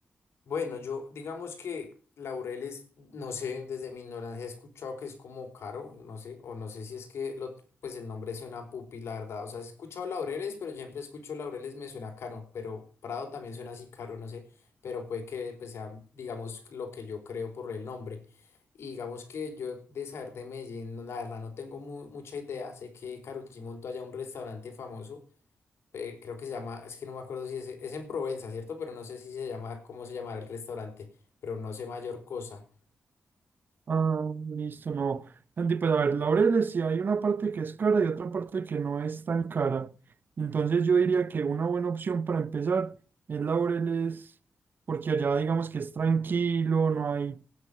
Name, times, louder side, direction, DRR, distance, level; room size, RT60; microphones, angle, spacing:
voice 1, 0.5-1.9 2.2-14.5 14.8-18.2 18.8-25.2 25.9-31.1 31.4-32.6, left 5 dB, 80° left, 4.5 m, -38 dB
voice 2, 33.9-39.9 40.4-42.9 43.3-44.2 44.9-47.4, right 5 dB, 50° right, 0.8 m, -27 dB
16.0 x 9.8 x 6.8 m
wide cardioid pair, 110°, 4 cm